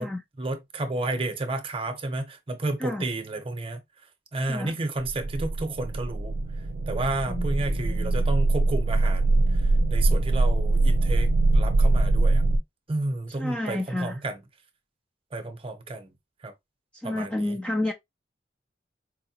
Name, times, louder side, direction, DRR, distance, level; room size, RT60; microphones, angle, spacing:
voice 1, 0.4-3.8 4.3-6.4 6.9-9.4 9.9-12.4 12.9-14.4 15.3-16.1 16.4-16.5 17.0-17.5, right 2 dB, 30° right, 0.7 m, -31 dB
sound 1, 5.0-12.6, right 2 dB, 70° right, 0.5 m, -23 dB
voice 2, 7.3-8.2 13.3-14.2 16.9-17.9, left 1 dB, 5° left, 0.3 m, -31 dB
4.6 x 2.1 x 2.8 m
head